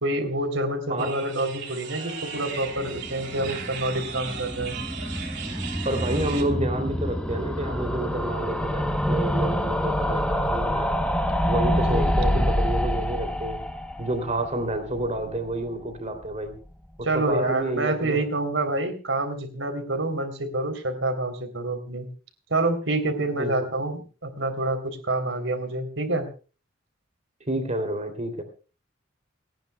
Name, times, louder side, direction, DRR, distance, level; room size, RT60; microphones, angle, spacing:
voice 1, 0.0-4.8 11.7-12.5 17.0-22.1 22.5-26.3, right 2 dB, 80° right, 7 dB, 3.4 m, -27 dB
sound 1, 1.0-6.4, right 7 dB, 65° right, 3.1 m, -37 dB
sound 2, 2.7-15.6 15.9-16.0 16.2-16.3 16.5-16.6, equal, 5° left, 0.9 m, -27 dB
voice 2, 5.8-11.0 11.5-13.6 14.0-16.5 17.1-18.2 23.4-23.5 27.4-28.4, right 1 dB, 35° right, 7 dB, 3.0 m, -29 dB
29.5 x 10.5 x 2.3 m, 0.36 s
head